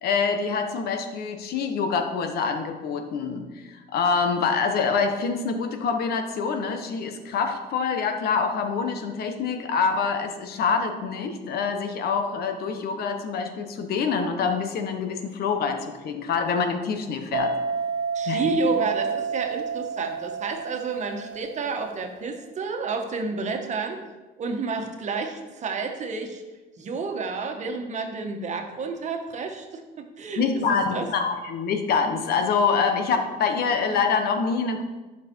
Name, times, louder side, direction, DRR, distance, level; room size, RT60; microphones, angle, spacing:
voice 1, 0.0-17.6 18.3-18.6 30.4-34.8, left 5 dB, 65° left, 6 dB, 1.3 m, -26 dB
sound 1, 17.3-22.1, right 5 dB, 70° right, 1.0 m, -30 dB
voice 2, 18.1-24.0 24.4-26.4 26.8-30.4 30.7-31.1, right 4 dB, 45° right, 4 dB, 1.5 m, -30 dB
13.5 x 6.0 x 4.6 m, 1.2 s
cardioid pair, 110°, 17 cm